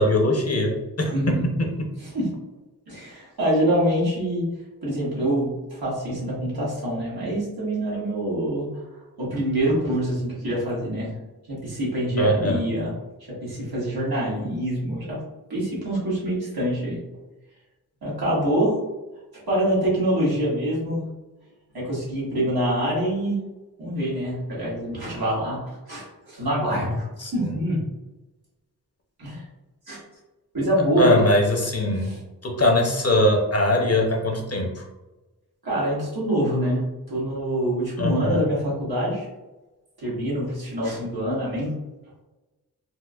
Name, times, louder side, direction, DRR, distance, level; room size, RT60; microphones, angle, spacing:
voice 1, 0.0-1.9 12.2-12.6 27.2-27.3 31.0-32.1 32.4-34.8 38.0-38.4, left 1 dB, 40° left, 1 dB, 0.7 m, -21 dB
voice 2, 1.1-1.5 2.1-2.3 2.9-4.4 4.8-8.7 9.2-11.1 11.5-12.9 13.4-15.2 15.5-17.0 18.0-18.7 19.5-21.0 21.7-23.4 23.8-27.1 27.3-27.8 29.2-29.4 29.9-30.0 30.5-31.2 32.0-32.2 35.6-39.3 40.0-41.7, right 1 dB, 80° right, -7 dB, 1.4 m, -25 dB
4.4 x 2.1 x 2.3 m, 1.1 s
wide cardioid pair, 60°, 37 cm